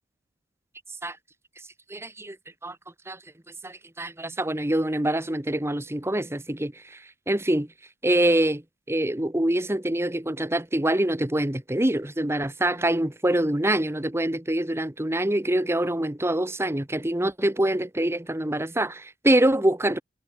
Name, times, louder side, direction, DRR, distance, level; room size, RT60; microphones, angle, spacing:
voice 1, 1.9-2.4 2.6-2.8 3.1-3.2 3.6-7.0 7.3-7.7 8.0-8.6 8.9-20.0, right 1 dB, 15° right, 1.3 m, -25 dB
head